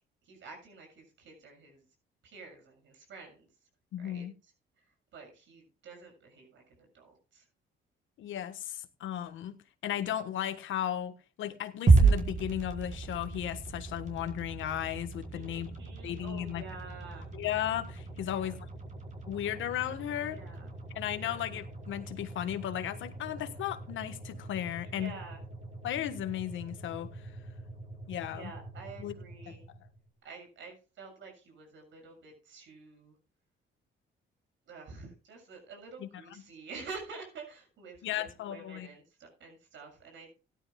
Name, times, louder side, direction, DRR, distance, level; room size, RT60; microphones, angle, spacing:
voice 1, 0.3-1.8 2.2-3.5 4.0-4.3 4.8-4.9 5.1-7.4 15.3-17.3 18.2-18.5 20.2-20.7 21.2-21.4 24.8-25.4 28.3-29.6 30.2-33.1 34.7-40.4, right 4 dB, 75° right, 3 dB, 7.2 m, -49 dB
voice 2, 3.9-4.3 8.2-9.6 9.8-15.7 16.0-16.6 17.3-18.6 19.3-20.4 20.9-25.1 25.8-27.2 28.1-28.5 29.0-29.1 29.5-29.6 36.0-36.1 38.0-38.9, left 11 dB, 80° left, 10 dB, 1.4 m, -35 dB
sound 1, 11.9-30.1, right 4 dB, 40° right, 4.8 m, -33 dB
17.5 x 11.5 x 2.3 m, 0.32 s
cardioid pair, 90°, 20 cm